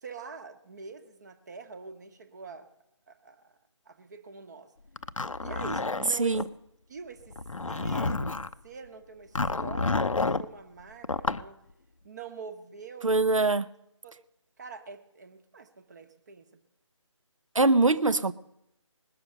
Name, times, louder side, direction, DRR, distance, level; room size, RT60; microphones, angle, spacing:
voice 1, 0.0-2.7 3.1-3.5 3.9-4.7 5.4-6.5 6.9-7.4 7.7-8.3 8.6-11.6 12.0-13.2 14.0-14.2 14.6-16.6, right 5 dB, 35° right, 1.0 m, -44 dB
Zipper (clothing), 5.0-6.5 7.3-8.5 9.4-10.5 11.0-11.5, left 3 dB, 90° left, 0.6 m, -29 dB
voice 2, 13.0-13.7 17.6-18.3, right 3 dB, 90° right, 0.6 m, -23 dB
20.0 x 6.9 x 6.5 m
figure-of-eight pair, 155°, 16 cm